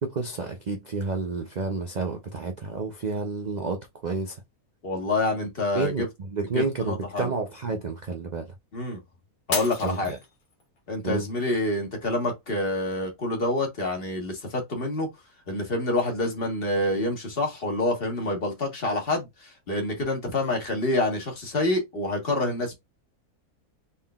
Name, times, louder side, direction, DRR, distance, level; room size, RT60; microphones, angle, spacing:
voice 1, 0.0-4.4 5.7-8.5 9.8-10.2 11.0-11.3, right 4 dB, 75° right, 0.4 m, -30 dB
voice 2, 4.8-6.1 6.5-7.3 8.7-9.0 9.5-10.1 10.9-15.1 15.5-22.7, left 2 dB, 40° left, 1.5 m, -27 dB
Shatter, 9.5-10.8 11.3-11.8 12.3-12.4, left 4 dB, 70° left, 1.8 m, -33 dB
3.9 x 3.7 x 2.3 m
omnidirectional pair, 1.6 m